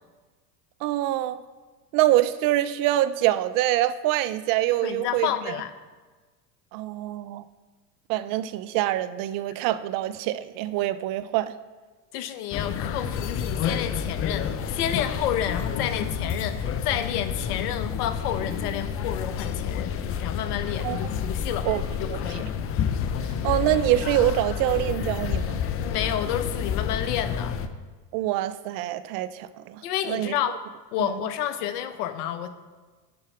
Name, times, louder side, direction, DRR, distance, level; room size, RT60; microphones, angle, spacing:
voice 1, 0.8-1.4 1.9-5.3 6.7-7.4 8.1-11.5 20.8-21.0 21.7-21.8 22.1-22.2 23.4-25.6 28.1-29.8 30.1-30.3 31.0-31.1, right 14 dB, 45° right, 14 dB, 0.4 m, -25 dB
voice 2, 4.8-5.7 12.1-21.7 22.0-22.5 25.8-27.6 29.8-30.5 30.9-32.5, left 10 dB, 70° left, 11 dB, 0.9 m, -30 dB
sound 1, 12.5-27.7, left 7 dB, 30° left, 0.5 m, -29 dB
10.5 x 4.2 x 4.9 m, 1.3 s
hypercardioid pair, 90°, 48 cm